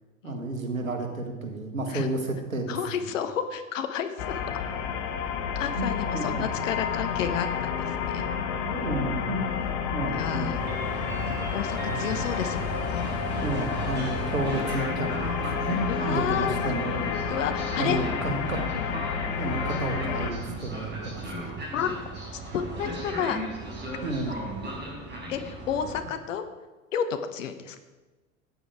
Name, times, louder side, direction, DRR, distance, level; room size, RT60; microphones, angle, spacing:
voice 1, 0.2-2.8 5.8-6.5 8.6-9.6 9.9-10.6 11.3-11.4 11.9-12.1 13.4-17.2 17.8-18.6 19.4-21.5 24.0-24.4 25.8-25.9, right 2 dB, 85° right, 5 dB, 1.8 m, -31 dB
voice 2, 2.7-4.4 5.5-8.2 10.1-10.6 11.5-13.1 15.9-16.7 17.3-18.0 18.5-18.7 21.4-21.9 22.5-23.4 24.3-24.4 25.3-26.4 26.9-27.8, left 8 dB, 70° left, 9 dB, 1.2 m, -31 dB
sound 1, 4.2-20.3, left 7 dB, 55° left, 1.5 m, -30 dB
Train, 10.5-26.0, right 1 dB, 25° right, 4.6 m, -36 dB
14.0 x 9.7 x 4.7 m, 1.2 s
figure-of-eight pair, 75°, 39 cm